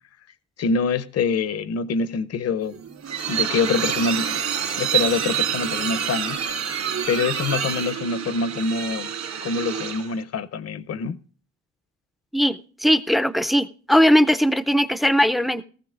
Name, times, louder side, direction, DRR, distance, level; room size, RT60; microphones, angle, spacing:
voice 1, 0.6-2.7 3.3-4.4 4.8-6.4 7.1-9.1 9.4-11.2, left 4 dB, 55° left, 0.7 m, -25 dB
sound 1, 2.7-10.2, right 8 dB, 65° right, 2.6 m, -27 dB
voice 2, 12.3-15.6, equal, ahead, 0.5 m, -19 dB
18.5 x 14.0 x 2.5 m
cardioid pair, 90°, 30 cm